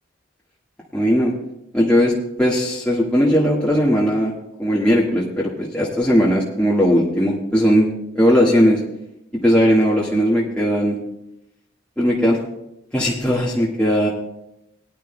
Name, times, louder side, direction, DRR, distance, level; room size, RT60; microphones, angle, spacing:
voice 1, 0.9-1.3 1.7-2.1 2.4-4.3 4.6-7.9 8.1-8.8 9.4-11.0 12.0-12.4 12.9-14.1, equal, 5° left, -7 dB, 1.5 m, -18 dB
21.0 x 10.5 x 2.2 m, 0.85 s
head